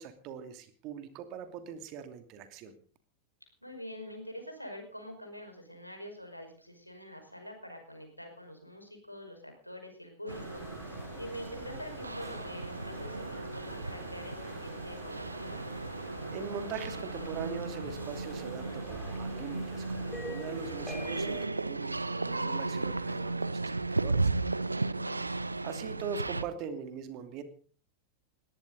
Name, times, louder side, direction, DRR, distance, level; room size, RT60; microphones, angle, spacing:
voice 1, 0.0-2.7 16.3-24.3 25.6-27.4, right 7 dB, 40° right, 8 dB, 2.6 m, -41 dB
voice 2, 3.6-15.6 24.9-25.4, equal, 90° left, 4 dB, 5.3 m, -45 dB
sound 1, 10.3-21.5, left 1 dB, 5° left, 2.9 m, -47 dB
sound 2, 10.3-26.4, right 3 dB, 80° right, 0.8 m, -35 dB
20.5 x 17.0 x 4.0 m, 0.42 s
figure-of-eight pair, 90°, 0 cm